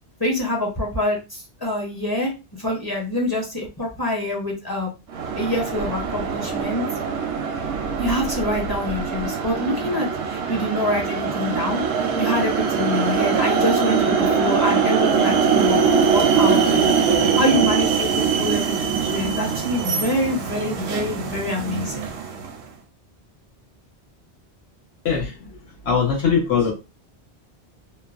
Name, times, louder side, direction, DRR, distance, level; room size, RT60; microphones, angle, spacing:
voice 1, 0.2-4.9 5.3-6.9 8.0-11.8 12.2-22.1, left 1 dB, 25° left, -2 dB, 0.7 m, -26 dB
sound 1, 5.1-22.6, right 6 dB, 85° right, 0.9 m, -22 dB
voice 2, 25.0-25.4 25.8-26.7, left 6 dB, 70° left, -2 dB, 1.3 m, -20 dB
3.1 x 2.1 x 2.4 m, 0.28 s
omnidirectional pair, 1.1 m